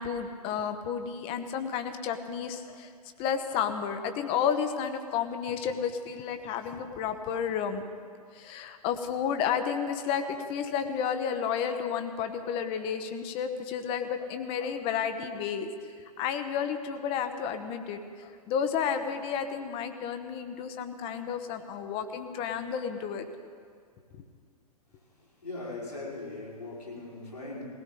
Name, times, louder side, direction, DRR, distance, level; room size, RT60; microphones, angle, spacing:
voice 1, 0.0-2.9 3.2-7.8 8.3-15.7 16.0-23.3 24.1-24.2, left 7 dB, 30° left, 9 dB, 1.0 m, -31 dB
voice 2, 25.4-27.6, left 2 dB, 80° left, -6 dB, 4.8 m, -39 dB
20.0 x 17.0 x 3.9 m, 2.1 s
figure-of-eight pair, 110°, 20 cm